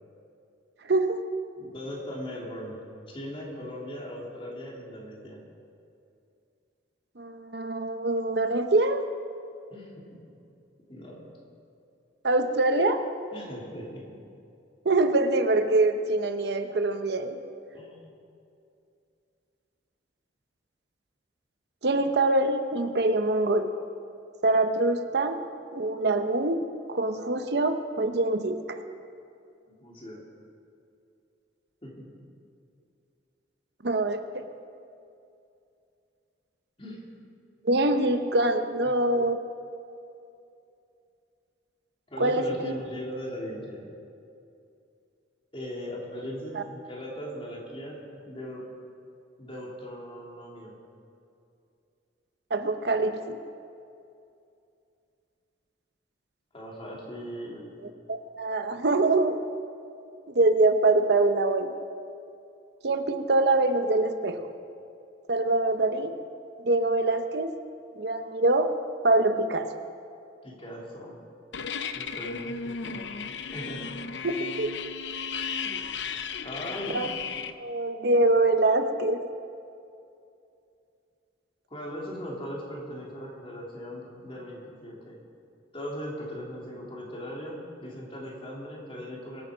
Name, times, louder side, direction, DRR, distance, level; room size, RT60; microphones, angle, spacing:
voice 1, 0.8-1.2 7.2-9.0 12.2-13.1 14.8-17.4 21.8-23.7 24.4-25.4 25.7-28.8 33.8-34.5 37.6-39.4 42.2-42.7 46.6-46.7 52.5-53.4 57.8-59.4 60.3-61.7 62.8-64.5 65.3-66.2 66.6-67.5 68.0-68.7 69.0-69.7 74.2-74.8 76.9-77.1 77.6-79.2, right 2 dB, 65° right, 8 dB, 0.8 m, -24 dB
voice 2, 1.6-2.8 3.1-5.4 9.7-10.1 10.9-11.2 13.3-14.2 17.7-18.1 29.8-30.2 31.8-32.1 36.8-37.0 42.1-43.8 45.5-48.6 49.4-50.7 56.5-57.7 70.4-71.2 71.9-73.0 73.5-74.0 76.4-77.1 81.7-85.2 85.7-89.4, equal, 30° left, -3 dB, 3.2 m, -39 dB
sound 1, 71.5-77.5, left 6 dB, 75° left, 0.6 m, -35 dB
23.5 x 9.0 x 5.1 m, 2.6 s
head